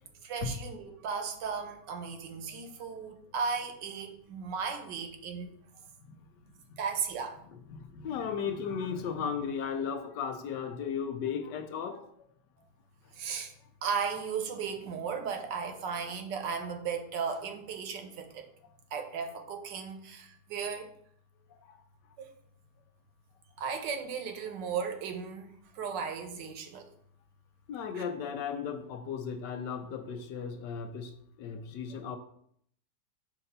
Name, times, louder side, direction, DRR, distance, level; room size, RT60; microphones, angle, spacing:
voice 1, 0.2-5.5 6.8-7.4 13.1-13.5 13.8-18.4 18.9-20.9 22.2-22.3 23.6-25.5 25.7-26.8 27.9-28.0, right 6 dB, 80° right, 6 dB, 1.5 m, -35 dB
voice 2, 7.5-12.1 21.6-21.8 27.7-32.2, left 6 dB, 80° left, 7 dB, 1.3 m, -36 dB
6.7 x 2.8 x 5.4 m, 0.68 s
omnidirectional pair, 1.9 m